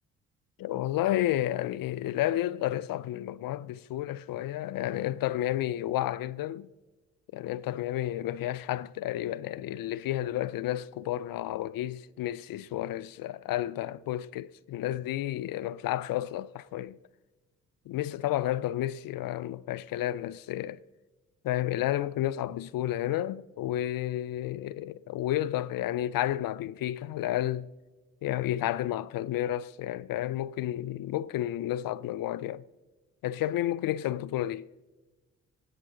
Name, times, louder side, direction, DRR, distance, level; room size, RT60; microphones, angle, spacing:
voice 1, 0.6-6.7 7.3-17.0 17.9-20.8 21.4-27.7 28.2-32.6 33.2-34.7, left 13 dB, 60° left, 0.6 m, -31 dB
24.5 x 8.8 x 3.8 m
hypercardioid pair, 40°, 39 cm